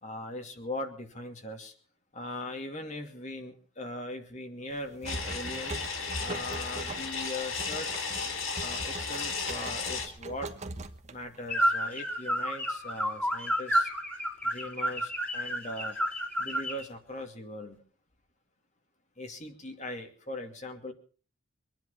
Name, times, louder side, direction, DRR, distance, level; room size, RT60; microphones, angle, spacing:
voice 1, 0.0-1.7 2.1-5.8 6.2-8.2 8.6-10.5 11.1-13.9 14.4-16.0 16.4-17.8 19.2-20.9, left 1 dB, 35° left, 5 dB, 2.5 m, -40 dB
sound 1, 4.7-11.5, right 2 dB, 35° right, 1.3 m, -41 dB
sound 2, 5.1-10.1, left 5 dB, 85° left, 3.7 m, -34 dB
sound 3, 11.5-16.8, equal, 5° left, 2.8 m, -30 dB
23.5 x 10.5 x 5.6 m, 0.42 s
head